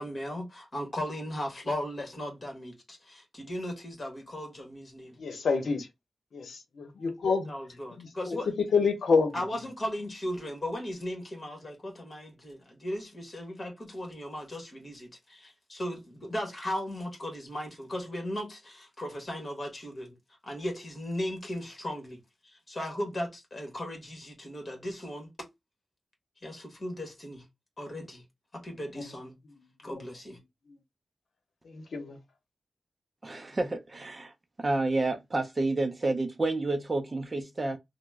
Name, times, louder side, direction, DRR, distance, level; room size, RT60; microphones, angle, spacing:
voice 1, 0.0-5.2 7.5-8.5 9.3-20.2 20.4-25.3 26.4-27.4 27.8-28.2 28.5-29.4 29.8-30.4, left 1 dB, 30° left, 1.2 m, -37 dB
voice 2, 5.2-5.9 6.3-7.5 8.0-9.4 29.0-29.1 29.9-30.0 31.7-32.2, left 5 dB, 85° left, 0.7 m, -28 dB
voice 3, 33.2-34.3 34.6-37.8, right 2 dB, 30° right, 0.5 m, -29 dB
2.9 x 2.0 x 3.3 m
wide cardioid pair, 170°, 0 cm